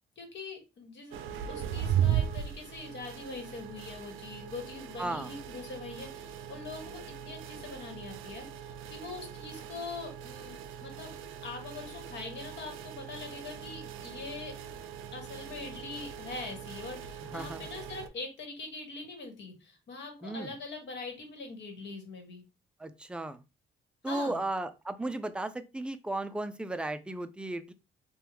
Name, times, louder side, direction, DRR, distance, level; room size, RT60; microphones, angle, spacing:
voice 1, 0.2-11.1 11.4-14.5 15.1-22.4 24.1-24.4, left 3 dB, 65° left, 4 dB, 1.3 m, -43 dB
sound 1, 1.1-18.1, right 9 dB, 85° right, 0.4 m, -38 dB
voice 2, 5.0-5.3 17.3-17.7 20.2-20.5 22.8-23.4 24.0-27.7, right 2 dB, 5° right, 10 dB, 0.3 m, -35 dB
3.4 x 2.3 x 2.9 m, 0.27 s
cardioid pair, 90°, 20 cm